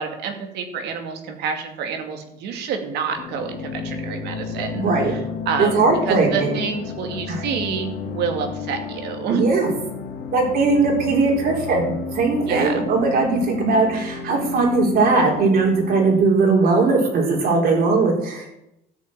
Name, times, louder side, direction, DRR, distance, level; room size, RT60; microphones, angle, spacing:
voice 1, 0.0-5.2 5.5-9.5 12.5-12.9, right 6 dB, 80° right, 5 dB, 2.3 m, -28 dB
sound 1, 3.2-16.2, left 4 dB, 65° left, 1.9 m, -32 dB
voice 2, 4.7-5.1 5.6-6.5 7.3-7.4 9.3-9.7 10.3-18.5, right 3 dB, 65° right, 0 dB, 4.6 m, -19 dB
13.0 x 5.7 x 8.9 m, 0.81 s
cardioid pair, 110°, 17 cm